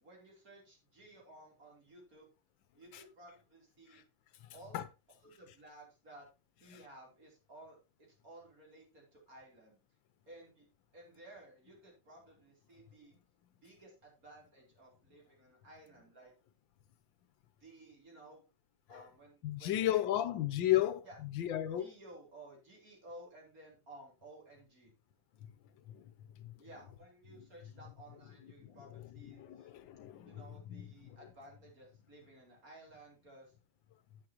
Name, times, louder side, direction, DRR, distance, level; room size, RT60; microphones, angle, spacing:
voice 1, 0.0-2.3 2.7-4.0 4.5-4.8 5.2-6.3 6.6-7.8 8.2-9.8 10.3-10.7 10.9-13.2 13.6-16.3 17.6-18.4 18.9-20.1 21.0-21.2 21.8-24.9 26.6-29.7 30.2-33.5, right 1 dB, 45° right, 3.8 m, -56 dB
voice 2, 19.4-21.1 21.3-21.9 25.9-26.0 26.4-26.5 28.6-28.8 29.2-30.8, left 13 dB, 80° left, 1.5 m, -34 dB
11.0 x 8.6 x 2.9 m
omnidirectional pair, 2.1 m